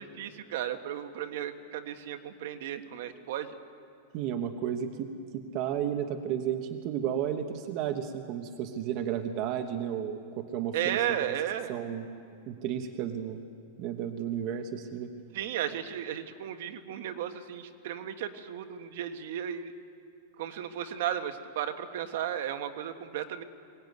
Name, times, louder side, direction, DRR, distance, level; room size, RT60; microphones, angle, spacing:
voice 1, 0.0-3.5 10.7-11.7 15.3-19.7 20.4-23.4, right 10 dB, 55° right, 8 dB, 1.4 m, -34 dB
voice 2, 4.1-11.3 11.7-12.1 12.5-13.4 13.8-15.1, right 9 dB, 35° right, 6 dB, 1.1 m, -33 dB
22.5 x 18.5 x 9.4 m, 2.5 s
supercardioid pair, 170°, 0 cm